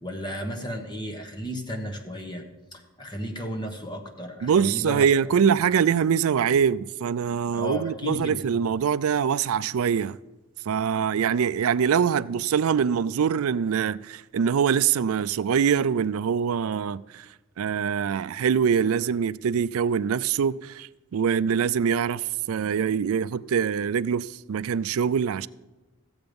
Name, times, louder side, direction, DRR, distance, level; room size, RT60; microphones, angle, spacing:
voice 1, 0.0-2.4 2.7-5.0 5.6-5.7 7.5-8.4, equal, 20° left, 1.2 m, -34 dB
voice 2, 4.4-10.2 10.7-17.3 17.6-25.5, right 7 dB, 80° right, 0.4 m, -24 dB
15.5 x 7.9 x 5.2 m
head